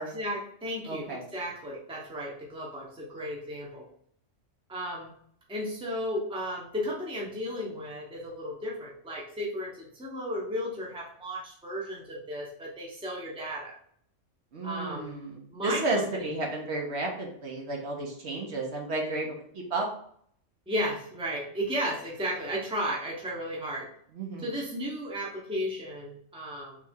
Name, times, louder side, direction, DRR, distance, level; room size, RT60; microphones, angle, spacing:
voice 1, 0.1-3.8 4.7-5.1 5.5-13.8 14.6-15.1 15.5-16.4 20.7-23.9 24.4-26.8, equal, 5° right, -3 dB, 0.8 m, -34 dB
voice 2, 0.9-1.2 14.5-19.9 24.1-24.5, right 2 dB, 60° right, 0 dB, 1.1 m, -32 dB
3.3 x 3.2 x 3.6 m, 0.63 s
omnidirectional pair, 1.3 m